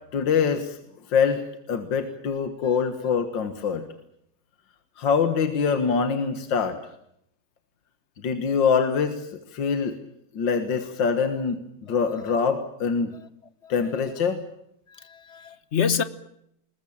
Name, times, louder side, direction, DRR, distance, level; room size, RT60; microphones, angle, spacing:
voice 1, 0.1-0.8 1.1-3.9 5.0-6.8 8.2-9.9 10.3-11.6 11.9-13.1 13.7-14.4, left 6 dB, 70° left, 8 dB, 2.2 m, -24 dB
voice 2, 14.9-16.0, left 7 dB, 45° left, 14 dB, 1.1 m, -27 dB
21.5 x 20.5 x 8.7 m, 0.75 s
omnidirectional pair, 2.1 m